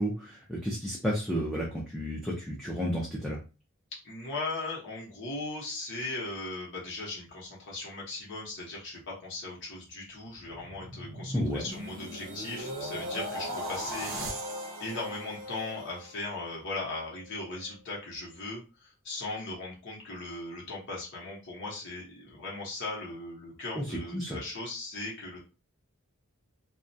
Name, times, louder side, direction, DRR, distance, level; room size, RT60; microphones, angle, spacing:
voice 1, 0.0-3.4 11.3-11.6 23.7-24.4, equal, ahead, -5 dB, 0.4 m, -32 dB
voice 2, 4.0-14.1 14.8-25.4, left 2 dB, 55° left, -4 dB, 0.9 m, -38 dB
sound 1, 10.3-16.5 17.0-17.2, equal, 65° right, 0.6 m, -38 dB
2.3 x 2.1 x 2.6 m, 0.31 s
head